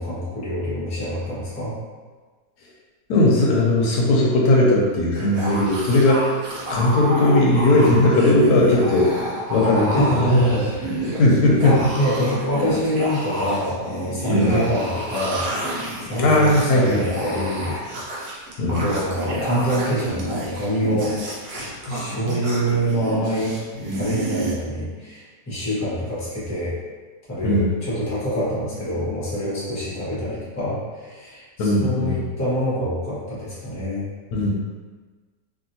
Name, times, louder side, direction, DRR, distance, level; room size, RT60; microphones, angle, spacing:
voice 1, 0.0-1.7 10.0-11.1 11.6-15.5 16.0-17.8 18.1-21.1 21.9-23.5 24.0-26.7 27.3-34.0, equal, 10° left, -10 dB, 0.9 m, -25 dB
voice 2, 3.1-6.3 6.7-9.2 9.5-10.6 11.2-11.8 14.3-14.6 16.1-17.0 18.6-18.8 21.9-22.1 27.4-27.7 31.6-32.3 34.3-34.5, left 1 dB, 75° left, -2 dB, 1.2 m, -18 dB
sound 1, 5.1-24.5, right 1 dB, 70° right, 1.2 m, -29 dB
3.0 x 2.8 x 2.7 m, 1.4 s
omnidirectional pair, 1.8 m